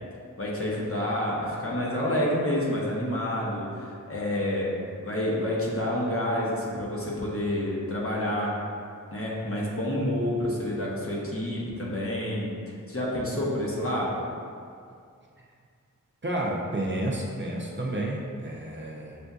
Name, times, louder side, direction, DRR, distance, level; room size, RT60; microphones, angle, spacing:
voice 1, 0.4-4.7 5.0-8.5 9.1-12.5 12.9-14.2, left 1 dB, 45° left, -5 dB, 0.9 m, -28 dB
voice 2, 16.2-19.2, right 1 dB, 35° right, -3 dB, 0.6 m, -30 dB
6.7 x 2.6 x 2.3 m, 2.3 s
wide cardioid pair, 60°, 32 cm